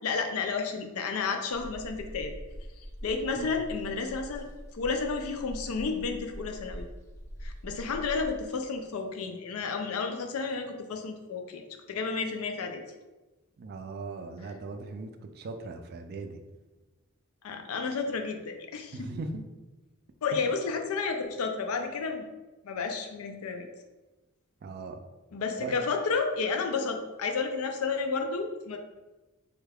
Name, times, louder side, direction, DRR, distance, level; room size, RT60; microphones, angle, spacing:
voice 1, 0.0-2.3 3.0-4.4 4.7-6.9 7.4-11.6 11.9-12.8 17.4-19.1 20.2-22.2 22.6-23.7 25.3-28.8, left 4 dB, 90° left, 5 dB, 0.4 m, -31 dB
sound 1, 1.5-8.5, equal, 15° left, 0.5 m, -43 dB
voice 2, 13.6-15.1 15.4-16.4 18.9-19.4 24.6-25.0 25.6-25.7, right 3 dB, 50° right, 6 dB, 0.3 m, -38 dB
3.4 x 2.3 x 3.4 m, 1.1 s
head